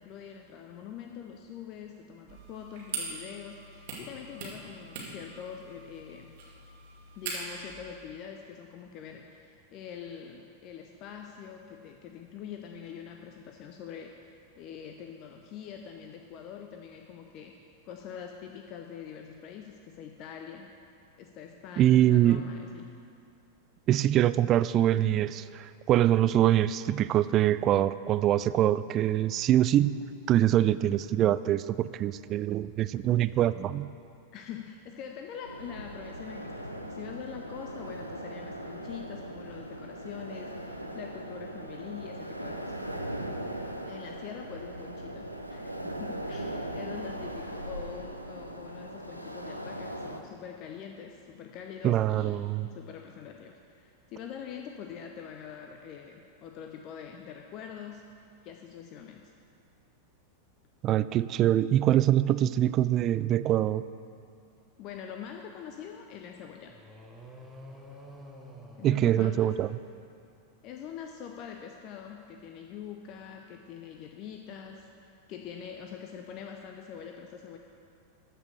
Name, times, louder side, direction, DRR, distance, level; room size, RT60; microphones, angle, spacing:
voice 1, 0.0-6.3 7.2-14.1 14.6-17.5 17.8-20.7 21.2-22.9 34.3-42.7 43.8-59.3 64.8-66.7 68.8-69.5 70.6-77.6, left 8 dB, 40° left, 3 dB, 0.7 m, -44 dB
sound 1, 2.3-7.7, right 4 dB, 50° right, 2.3 m, -41 dB
voice 2, 21.8-22.5 23.9-30.0 30.3-33.9 51.8-52.7 60.8-63.8 68.8-69.7, right 12 dB, 35° right, 15 dB, 0.3 m, -24 dB
sound 2, 35.4-50.2, right 1 dB, 90° left, 0.6 m, -39 dB
sound 3, 66.7-70.0, equal, 5° right, 1.2 m, -49 dB
13.5 x 5.6 x 6.7 m, 2.5 s
figure-of-eight pair, 90°, 0 cm